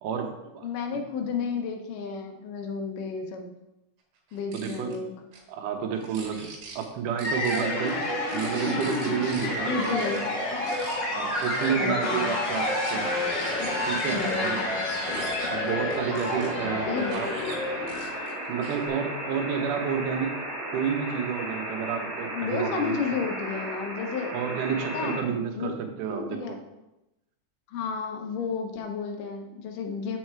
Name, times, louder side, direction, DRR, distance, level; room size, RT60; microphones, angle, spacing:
voice 1, 0.0-0.6 0.9-1.0 4.5-5.0 5.5-6.5 6.8-8.0 8.3-9.9 11.1-13.1 13.9-14.6 15.5-17.3 18.5-20.3 20.7-23.0 24.3-26.6, right 7 dB, 80° right, 5 dB, 2.4 m, -30 dB
voice 2, 0.6-3.5 4.3-5.1 9.7-10.2 11.8-12.3 14.1-14.6 16.8-17.2 22.3-24.3 24.9-25.7 26.1-26.6 27.7-30.2, left 5 dB, 80° left, 4 dB, 2.5 m, -32 dB
sound 1, 4.3-5.0 5.3-5.4 5.9-6.8 7.2-9.5 9.8-10.2 10.6-11.0 11.3-16.5 17.0-17.6 17.9-18.9, right 4 dB, 60° right, 2.4 m, -44 dB
sound 2, 7.2-18.4, left 1 dB, 45° left, 1.7 m, -29 dB
sound 3, 12.7-25.2, equal, 25° right, 1.8 m, -36 dB
7.6 x 5.6 x 4.5 m, 0.93 s
omnidirectional pair, 3.7 m